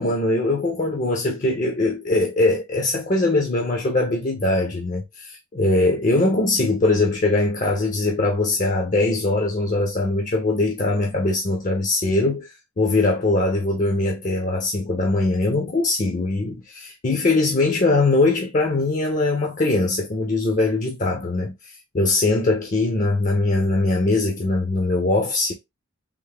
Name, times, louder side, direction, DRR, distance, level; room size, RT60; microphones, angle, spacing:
voice 1, 0.0-25.5, left 2 dB, 40° left, 0.6 m, -21 dB
3.5 x 2.5 x 3.4 m
head